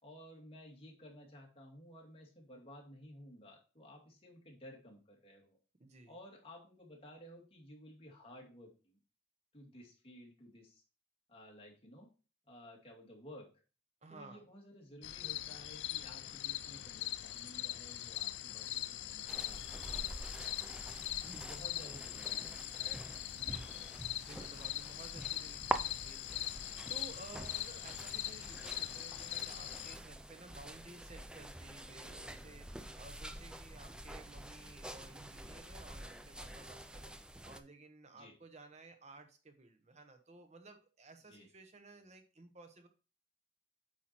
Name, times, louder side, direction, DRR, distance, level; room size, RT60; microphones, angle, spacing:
voice 1, 0.0-5.6 6.1-9.0 9.5-10.8 11.3-12.1 12.5-13.5 14.1-20.9 21.5-22.9 38.1-38.3 41.3-41.5, equal, 35° left, -1 dB, 2.3 m, -55 dB
voice 2, 5.8-6.2 14.0-14.5 21.2-21.6 23.3-37.1 37.4-42.9, right 3 dB, 40° right, 6 dB, 0.9 m, -56 dB
sound 1, 15.0-30.0, left 13 dB, 85° left, 0.5 m, -41 dB
sound 2, 19.3-37.6, right 1 dB, 5° right, 0.5 m, -46 dB
8.6 x 4.6 x 4.4 m, 0.35 s
head